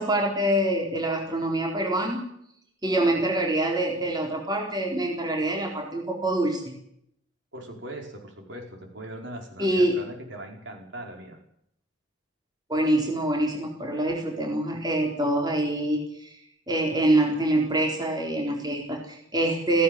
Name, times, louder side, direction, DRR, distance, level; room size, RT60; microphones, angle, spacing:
voice 1, 0.0-2.2 2.8-6.7 9.6-10.0 12.7-16.3 16.7-19.8, right 1 dB, 20° right, 0 dB, 4.0 m, -25 dB
voice 2, 7.5-11.4, right 1 dB, 60° right, 2 dB, 5.2 m, -40 dB
17.0 x 17.0 x 9.3 m, 0.71 s
head